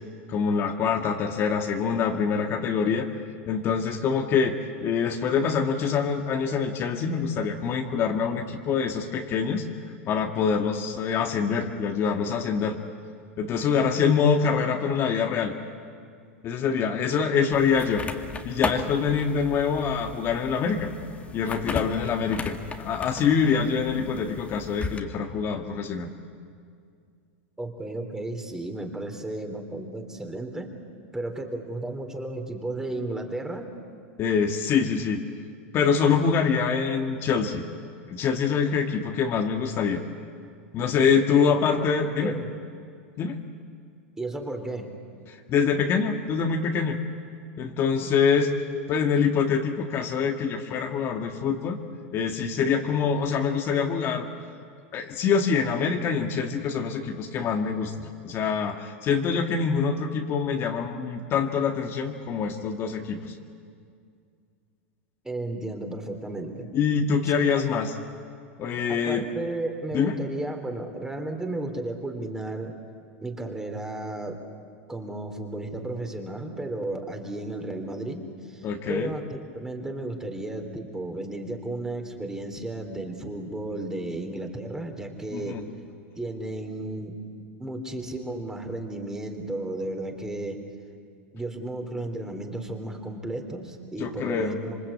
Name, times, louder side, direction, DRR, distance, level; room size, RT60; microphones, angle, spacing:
voice 1, 0.3-3.1 3.5-9.6 10.1-12.8 13.4-15.5 16.4-18.0 18.4-20.9 21.3-26.1 34.2-35.2 35.7-37.6 38.1-40.0 40.7-42.3 43.2-43.4 45.5-47.0 47.6-48.5 48.9-51.8 52.1-54.3 54.9-63.3 66.7-67.9 68.6-69.2 69.9-70.1 78.6-79.1 85.3-85.6 94.0-94.6, left 6 dB, 35° left, 3 dB, 1.8 m, -25 dB
sound 1, 17.5-25.0, left 4 dB, 20° left, 2.0 m, -36 dB
voice 2, 27.6-30.7 31.1-33.7 41.3-41.9 42.2-42.5 44.2-44.9 65.2-66.7 67.7-67.8 68.9-72.8 73.2-74.4 74.9-85.6 86.2-87.3 87.6-90.6 91.3-94.8, right 2 dB, 10° right, 5 dB, 3.3 m, -34 dB
27.0 x 23.5 x 8.6 m, 2.2 s
hypercardioid pair, 125°, 7 cm